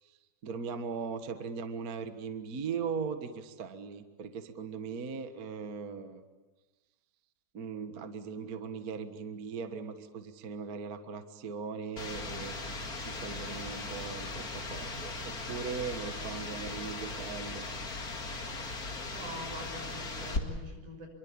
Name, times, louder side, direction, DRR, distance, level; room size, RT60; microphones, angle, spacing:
voice 1, 0.4-6.2 7.5-17.7, right 5 dB, 40° right, 8 dB, 1.3 m, -39 dB
sound 1, 12.0-20.4, left 3 dB, 30° left, 2.4 m, -38 dB
voice 2, 19.0-21.1, equal, 70° right, 2 dB, 7.6 m, -44 dB
27.5 x 23.5 x 8.6 m, 1.1 s
omnidirectional pair, 3.7 m